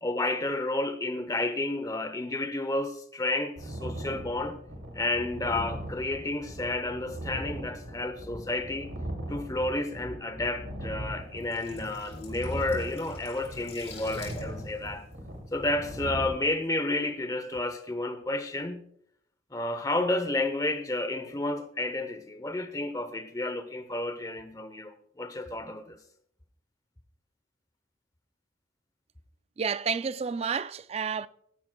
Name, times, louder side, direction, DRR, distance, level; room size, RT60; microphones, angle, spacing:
voice 1, 0.0-4.6 4.9-8.9 9.3-15.0 15.5-18.9 19.5-26.0, left 2 dB, 15° left, 0.8 m, -31 dB
sound 1, 3.6-16.3, right 1 dB, 75° right, 2.6 m, -39 dB
sound 2, 11.2-16.1 16.4-16.6, left 3 dB, 35° left, 4.7 m, -49 dB
voice 2, 29.6-31.3, right 6 dB, 30° right, 0.3 m, -30 dB
17.0 x 12.5 x 2.3 m
head